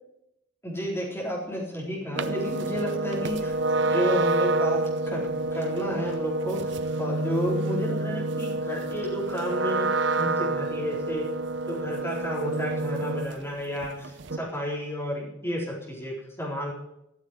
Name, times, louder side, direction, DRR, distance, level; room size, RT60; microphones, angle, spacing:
voice 1, 0.6-3.6 3.8-9.9 10.2-11.3 11.7-16.7, equal, 10° left, -4 dB, 4.2 m, -32 dB
sound 1, 2.1-13.5 13.8-14.4, right 2 dB, 65° right, 0.7 m, -28 dB
14.0 x 7.2 x 9.6 m, 0.83 s
head